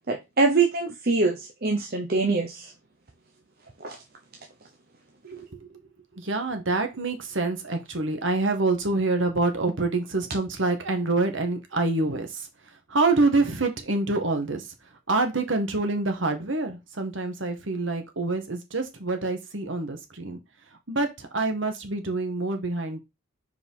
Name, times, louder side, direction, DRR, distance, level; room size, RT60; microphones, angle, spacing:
voice 1, 0.1-2.7 3.8-4.0, right 3 dB, 50° right, 2 dB, 1.0 m, -24 dB
voice 2, 5.2-5.6 6.1-12.4 12.9-14.6 15.1-20.4 20.9-23.0, right 3 dB, 65° right, 6 dB, 1.5 m, -26 dB
5.0 x 4.4 x 5.6 m, 0.23 s
head